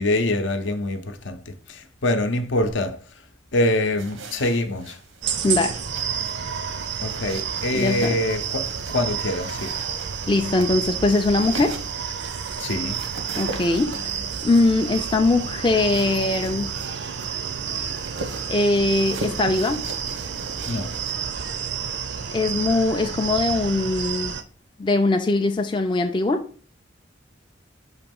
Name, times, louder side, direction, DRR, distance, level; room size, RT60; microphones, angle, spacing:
voice 1, 0.0-3.0 3.5-5.0 7.0-9.7 12.6-13.0 20.7-20.9, left 1 dB, 75° left, 0.7 m, -25 dB
sound 1, 3.9-21.1, right 3 dB, 85° right, 0.9 m, -41 dB
sound 2, 5.2-24.4, right 7 dB, 65° right, 0.5 m, -30 dB
voice 2, 5.4-5.8 7.7-8.2 10.3-11.8 13.4-14.0 14.4-16.7 18.5-19.9 22.3-24.3 24.8-26.5, left 2 dB, 25° left, 0.4 m, -21 dB
5.9 x 3.1 x 5.2 m
head